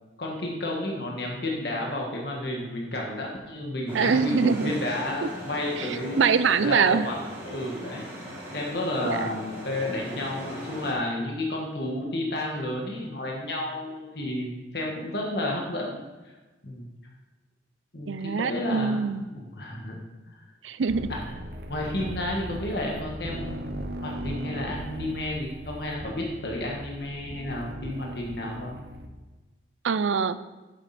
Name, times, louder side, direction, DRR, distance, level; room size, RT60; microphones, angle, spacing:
voice 1, 0.2-6.2 6.6-7.1 7.4-16.0 16.2-16.3 16.6-16.9 17.9-19.0 19.3-20.0 21.1-21.3 21.7-28.8, left 1 dB, 55° left, -1 dB, 1.6 m, -31 dB
sound 1, 3.9-10.9, equal, 10° right, 2.1 m, -39 dB
voice 2, 3.9-4.7 5.8-7.1 9.0-9.3 18.1-19.2 20.6-21.1 29.8-30.4, right 5 dB, 80° right, 14 dB, 0.5 m, -24 dB
sound 2, 20.9-29.1, right 1 dB, 55° right, 0.8 m, -38 dB
9.8 x 7.5 x 4.2 m, 1.2 s
head